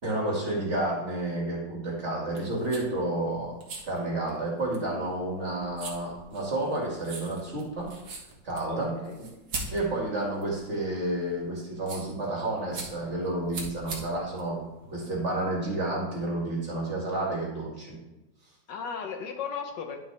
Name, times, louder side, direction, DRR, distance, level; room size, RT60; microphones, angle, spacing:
voice 1, 0.0-3.6 3.8-7.9 8.4-8.9 9.7-14.6 14.9-18.0, right 2 dB, 40° right, -2 dB, 2.4 m, -30 dB
sound 1, 2.2-15.4, right 3 dB, 80° right, 2.4 m, -42 dB
voice 2, 8.6-9.2 18.7-20.0, left 6 dB, 70° left, 4 dB, 1.6 m, -36 dB
11.0 x 6.2 x 3.4 m, 1.0 s
omnidirectional pair, 2.0 m